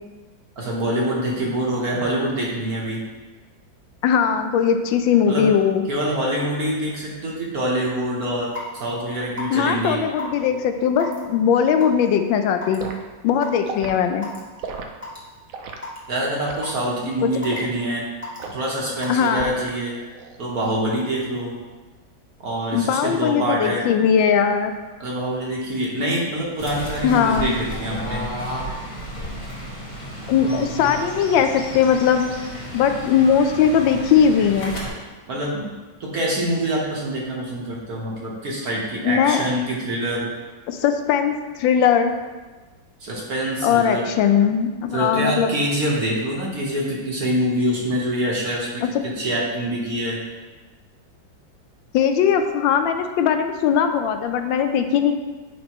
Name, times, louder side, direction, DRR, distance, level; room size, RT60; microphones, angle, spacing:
voice 1, 0.6-3.0 5.3-5.5 5.9-10.0 16.1-18.1 18.5-20.0 20.4-21.6 22.4-23.8 25.0-28.3 35.3-35.7 36.0-40.3 43.0-44.0 44.9-50.2, right 1 dB, 55° right, -4 dB, 1.4 m, -25 dB
voice 2, 4.0-5.8 9.5-12.9 13.2-14.3 17.2-17.3 19.1-19.5 22.7-24.7 27.0-27.6 30.3-32.3 32.7-34.8 39.0-39.5 40.7-42.1 43.6-45.5 48.8-48.9 51.9-55.1, left 7 dB, 80° left, 7 dB, 1.3 m, -19 dB
Raindrop / Water tap faucet / Drip, 8.5-8.8 9.4-9.6 10.2-10.3 11.0-11.2 11.8-12.1 12.6-12.8 13.4-13.5 14.2-14.4 15.0-15.2 15.8-16.0 16.6-16.9 17.4-17.7 18.2-18.4 19.0-19.3, left 3 dB, 5° left, 1.6 m, -32 dB
Liquid, 12.8-13.0 13.6-14.0 14.6-14.9 15.5-15.8 16.4-16.7 17.5-17.7 18.4-18.7 19.3-19.8 20.1-20.4, right 5 dB, 75° right, 0.7 m, -34 dB
Fowl / Bird, 26.6-34.9, equal, 50° left, 2.3 m, -33 dB
8.0 x 5.2 x 3.0 m, 1.3 s
omnidirectional pair, 2.1 m